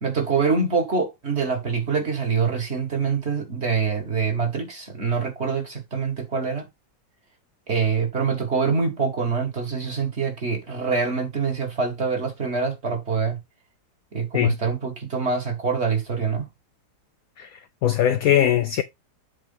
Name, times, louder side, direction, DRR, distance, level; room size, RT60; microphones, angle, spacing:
voice 1, 0.0-6.7 7.7-13.4 14.1-16.5, right 5 dB, 40° right, 1.6 m, -25 dB
voice 2, 17.4-18.8, left 11 dB, 75° left, 0.8 m, -21 dB
7.6 x 3.0 x 5.3 m
omnidirectional pair, 2.0 m